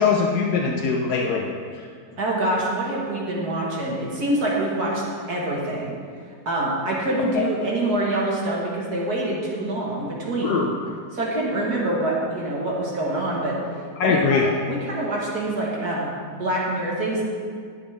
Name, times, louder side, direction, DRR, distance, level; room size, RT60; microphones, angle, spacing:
voice 1, 0.0-1.4 7.3-7.4 10.4-10.7 14.0-14.4, left 5 dB, 70° left, 0 dB, 1.3 m, -21 dB
voice 2, 2.2-5.0 5.3-6.0 6.5-10.7 11.1-13.5 14.0-14.4 14.7-17.2, right 1 dB, 65° right, -4 dB, 2.2 m, -25 dB
18.0 x 6.4 x 3.5 m, 2.1 s
omnidirectional pair, 1.8 m